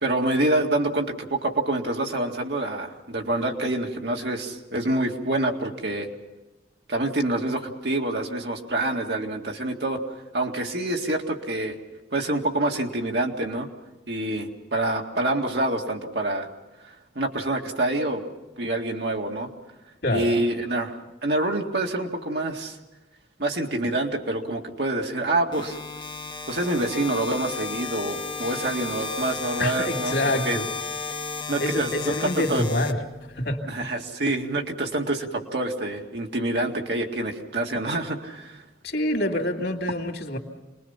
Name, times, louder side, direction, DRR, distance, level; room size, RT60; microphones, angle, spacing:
voice 1, 0.0-6.1 6.9-10.0 10.3-11.8 12.1-13.7 14.1-16.5 17.2-18.2 18.6-19.5 20.1-22.8 23.4-25.8 26.5-30.6 31.5-31.9 32.2-32.6 33.7-38.6, right 2 dB, 65° right, 1 dB, 2.2 m, -26 dB
sound 1, 25.5-33.5, left 5 dB, 25° left, 0.9 m, -34 dB
voice 2, 29.6-30.7 31.6-33.0 33.3-33.7 38.8-40.4, left 1 dB, 65° left, 3 dB, 2.5 m, -26 dB
28.0 x 21.0 x 5.8 m, 1.0 s
head